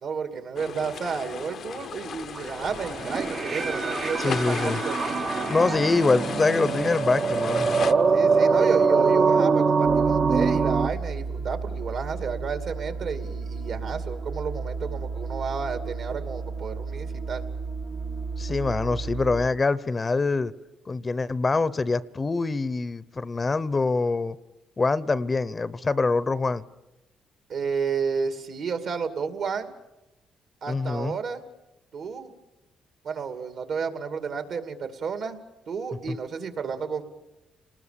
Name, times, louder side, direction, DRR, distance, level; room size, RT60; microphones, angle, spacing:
voice 1, 0.0-5.2 8.1-17.4 27.5-29.7 30.6-31.4 31.9-32.3 33.0-35.4 35.7-37.0, right 5 dB, 65° right, 2.5 m, -31 dB
sound 1, 0.6-7.9, left 7 dB, 60° left, 0.8 m, -36 dB
sound 2, 2.4-10.9, right 5 dB, 45° right, 0.8 m, -23 dB
voice 2, 4.2-4.8 5.5-7.7 18.4-20.5 20.9-24.4 24.8-26.6 30.7-31.2 36.1-36.2, left 3 dB, 30° left, 0.7 m, -25 dB
sound 3, 9.8-19.5, right 4 dB, 85° right, 4.8 m, -33 dB
29.5 x 20.0 x 6.9 m
cardioid pair, 90°, 0 cm